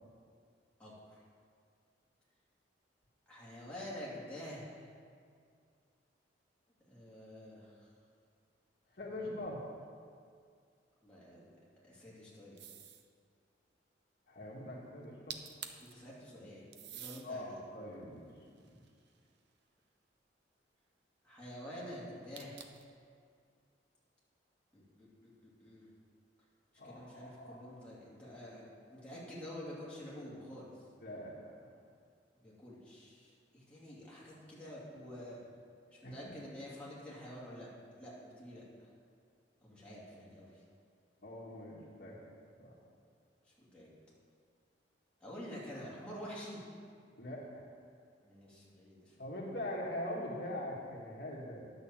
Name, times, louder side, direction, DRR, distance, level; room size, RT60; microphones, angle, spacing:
voice 1, 0.8-1.2 3.3-4.9 6.9-7.9 9.2-9.3 11.0-11.5 11.8-12.6 15.8-16.7 16.9-17.6 21.2-22.6 24.7-25.9 26.8-30.7 32.4-35.4 35.9-38.9 39.6-40.6 43.6-43.9 45.2-46.6 48.2-49.1, equal, 5° left, -8 dB, 2.7 m, -48 dB
voice 2, 8.9-9.6 14.3-15.4 17.2-18.3 26.8-27.7 31.0-31.7 36.0-36.3 41.2-42.2 42.6-42.7 47.2-47.7 49.2-51.6, left 1 dB, 60° left, -4 dB, 1.8 m, -43 dB
sound 1, 12.6-13.1 15.0-15.1 15.3-15.9 16.7-17.3 17.9-19.4 22.3-22.9, right 9 dB, 65° right, 0.8 m, -48 dB
10.5 x 6.5 x 7.3 m, 2.2 s
head